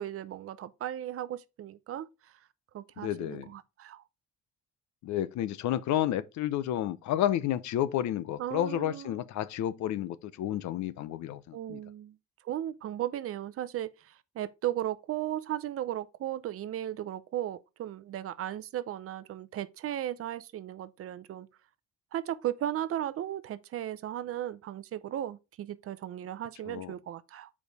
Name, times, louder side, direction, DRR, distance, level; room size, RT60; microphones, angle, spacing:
voice 1, 0.0-2.3 2.7-4.0 8.4-9.2 11.5-12.2 12.4-21.5 22.1-27.5, right 12 dB, 50° right, 0.6 m, -36 dB
voice 2, 3.0-3.5 5.0-11.8 26.7-26.9, left 12 dB, 70° left, 0.7 m, -31 dB
7.0 x 4.9 x 4.0 m
cardioid pair, 135°, 29 cm